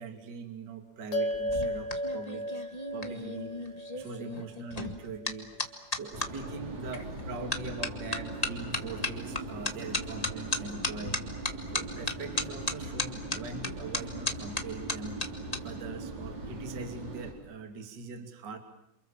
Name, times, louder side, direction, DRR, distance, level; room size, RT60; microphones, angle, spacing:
voice 1, 0.0-2.5 2.9-5.5 5.9-11.2 11.7-15.2 15.5-18.6, right 4 dB, 30° right, 6 dB, 3.0 m, -42 dB
sound 1, 1.1-5.8, equal, 55° left, 3.4 m, -36 dB
sound 2, 1.3-6.3 6.9-7.2 7.5-15.6 15.9-16.3, left 2 dB, 25° left, 0.8 m, -35 dB
sound 3, 6.1-17.3, right 2 dB, 50° right, 5.6 m, -40 dB
28.5 x 28.0 x 7.5 m, 0.77 s
omnidirectional pair, 4.2 m